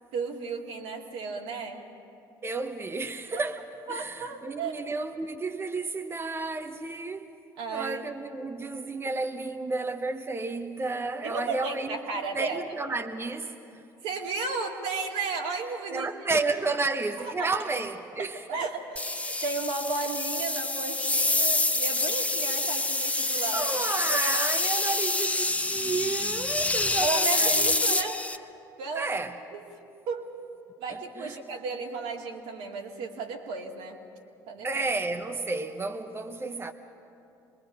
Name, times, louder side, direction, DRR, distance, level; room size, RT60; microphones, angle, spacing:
voice 1, 0.1-1.8 3.3-3.4 3.9-4.8 7.6-8.0 11.2-12.6 14.0-16.1 17.4-17.6 18.5-23.8 24.1-24.2 27.0-28.2 28.8-29.2 29.5-29.6 30.1-30.3 30.8-34.0 34.5-34.9 35.5-35.6, right 4 dB, 70° right, 2.3 m, -34 dB
voice 2, 2.4-7.3 7.7-12.0 12.3-13.8 15.9-18.4 23.5-28.0 28.9-29.4 30.9-31.4 34.6-36.7, right 3 dB, 25° right, 1.1 m, -32 dB
sound 1, 19.0-28.4, left 2 dB, 15° left, 0.9 m, -27 dB
26.0 x 21.5 x 5.5 m
hypercardioid pair, 60°, 10 cm